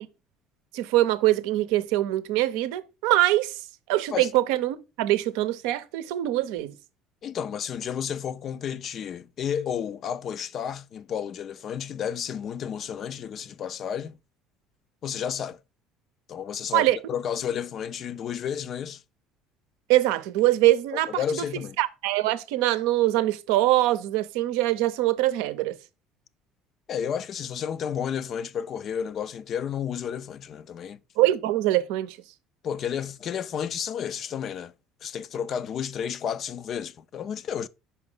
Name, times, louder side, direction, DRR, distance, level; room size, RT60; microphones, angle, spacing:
voice 1, 0.7-3.6 3.9-6.7 16.7-17.0 19.9-21.4 21.8-25.8 31.2-32.2, right 15 dB, 75° right, 0.5 m, -23 dB
voice 2, 7.2-14.2 15.0-15.6 16.3-19.0 20.9-21.8 26.9-31.0 32.6-34.7 35.0-37.7, left 8 dB, 50° left, 0.4 m, -32 dB
5.5 x 5.1 x 3.8 m
hypercardioid pair, 65°, 0 cm